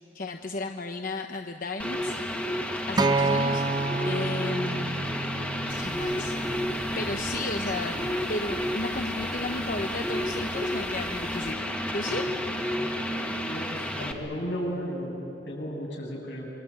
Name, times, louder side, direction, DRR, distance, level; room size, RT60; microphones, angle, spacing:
voice 1, 0.1-2.5 2.9-5.1 5.7-8.0 8.3-11.6 11.9-12.3, left 2 dB, 50° left, 4 dB, 1.0 m, -34 dB
sound 1, 1.8-14.1, left 1 dB, 10° left, 1.7 m, -31 dB
Acoustic guitar, 3.0-7.2 8.1-8.2, right 3 dB, 25° right, 0.7 m, -29 dB
sound 2, 5.7-11.5, equal, 45° right, 2.0 m, -45 dB
voice 2, 13.5-15.2 15.5-16.5, equal, 85° left, -1 dB, 7.6 m, -34 dB
27.5 x 24.5 x 8.6 m, 2.9 s
head